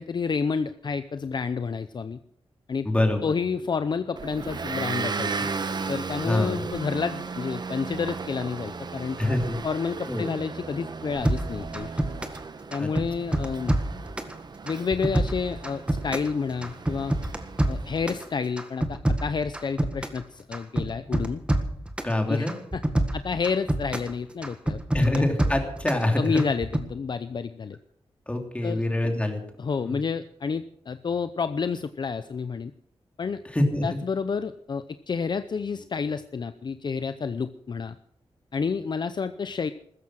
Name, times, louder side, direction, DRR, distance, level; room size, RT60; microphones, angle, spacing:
voice 1, 0.0-2.2 2.7-2.9 3.2-5.5 5.9-9.2 9.6-11.9 12.7-13.8 14.6-17.1 17.7-21.4 22.3-22.5 23.1-25.2 26.2-27.8 28.6-28.8 29.6-32.7 33.2-33.4 33.8-37.9 38.5-39.7, left 5 dB, 45° left, 11 dB, 0.6 m, -29 dB
voice 2, 2.8-3.2 6.2-6.6 9.2-9.6 10.1-10.3 12.8-12.9 22.0-22.5 24.9-26.4 28.3-29.4 29.8-30.0 33.4-34.0, left 1 dB, 10° left, 3 dB, 3.0 m, -25 dB
Motor vehicle (road) / Engine, 4.2-18.4, right 4 dB, 45° right, 1.1 m, -35 dB
sound 1, 11.2-12.4 12.7-14.3 14.7-16.3 16.6-18.2 18.6-20.2 20.5-22.1 22.5-24.1 24.4-26.0 26.4-26.8, right 1 dB, 10° right, 1.7 m, -26 dB
15.5 x 13.5 x 6.3 m, 0.67 s
wide cardioid pair, 125°, 10 cm